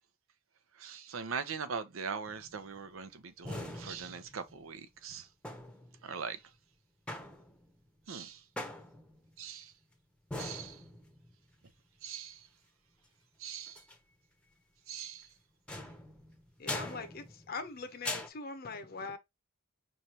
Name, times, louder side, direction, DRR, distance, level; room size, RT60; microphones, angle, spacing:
voice 1, 0.8-5.3 6.0-6.4 8.1-8.4 9.4-9.7 10.4-10.8 12.0-12.5 13.4-13.8 14.9-15.3, right 6 dB, 90° right, 0.7 m, -41 dB
sound 1, 2.3-2.8 3.4-4.7 5.4-6.1 7.1-7.8 8.6-9.3 10.3-11.3 13.7-14.0 15.7-17.7 18.0-18.3, left 1 dB, 5° left, 0.7 m, -42 dB
voice 2, 16.6-19.2, left 4 dB, 50° left, 0.7 m, -42 dB
5.4 x 3.2 x 2.9 m
head